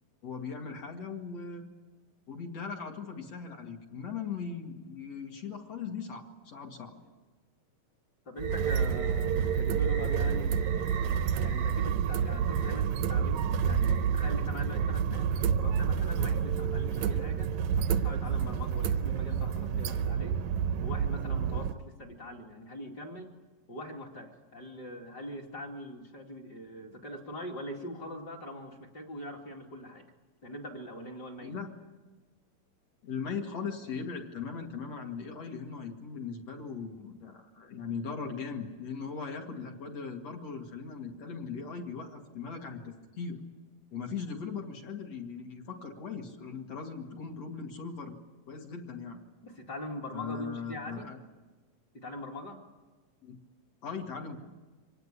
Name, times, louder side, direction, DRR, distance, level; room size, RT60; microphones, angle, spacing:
voice 1, 0.2-1.6 2.3-7.1 31.4-31.7 33.0-43.4 43.9-48.2 48.5-49.2 50.1-51.2 53.2-53.4 53.8-54.4, left 5 dB, 50° left, 2 dB, 2.9 m, -39 dB
voice 2, 8.2-20.4 20.8-23.3 23.7-30.1 30.4-31.5 49.4-51.1 51.9-52.6, left 1 dB, 30° left, 1 dB, 2.4 m, -42 dB
sound 1, 8.4-21.7, right 7 dB, 70° right, 1.9 m, -29 dB
25.5 x 18.5 x 9.9 m, 1.2 s
omnidirectional pair, 4.3 m